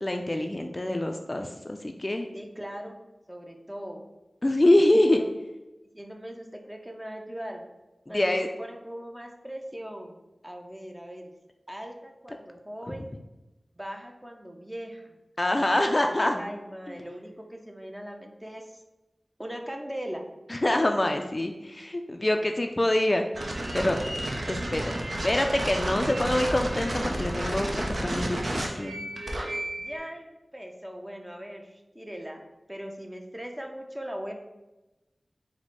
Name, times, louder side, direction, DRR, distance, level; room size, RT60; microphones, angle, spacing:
voice 1, 0.0-2.3 4.4-5.2 8.1-8.5 15.4-16.4 20.5-23.2 23.7-24.0 24.5-29.1, left 1 dB, 35° left, 4 dB, 0.3 m, -25 dB
voice 2, 2.3-3.0 3.3-4.0 5.0-5.3 5.9-7.6 8.1-11.3 11.7-13.1 13.8-15.1 16.3-18.8 19.4-20.2 29.7-32.4 32.7-34.3, equal, 10° right, 3 dB, 0.6 m, -40 dB
sound 1, 23.3-30.0, right 1 dB, 70° right, 0.6 m, -31 dB
4.5 x 2.1 x 4.1 m, 1.0 s
wide cardioid pair, 55°, 0 cm